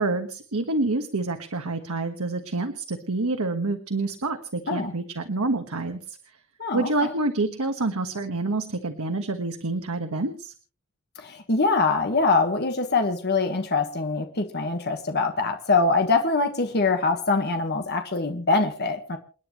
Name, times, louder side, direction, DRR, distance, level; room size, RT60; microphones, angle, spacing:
voice 1, 0.0-6.4 6.7-10.5, right 2 dB, 85° right, 6 dB, 1.4 m, -27 dB
voice 2, 6.6-7.1 11.2-19.2, left 3 dB, 50° left, 5 dB, 1.5 m, -24 dB
29.5 x 10.0 x 3.1 m, 0.39 s
head